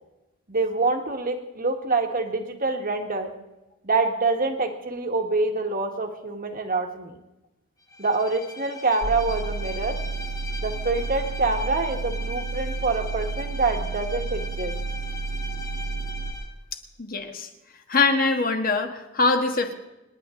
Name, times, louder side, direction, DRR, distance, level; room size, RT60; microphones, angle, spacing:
voice 1, 0.5-3.3 3.8-7.1 8.0-10.0 10.6-14.7, right 3 dB, 40° right, 4 dB, 1.6 m, -26 dB
Bowed string instrument, 7.9-16.5, left 2 dB, 15° left, 1.2 m, -39 dB
sound 1, 9.0-16.3, right 4 dB, 85° right, 1.6 m, -31 dB
voice 2, 17.0-17.5 17.9-19.7, left 3 dB, 40° left, 5 dB, 1.5 m, -23 dB
27.0 x 10.5 x 3.8 m, 0.99 s
head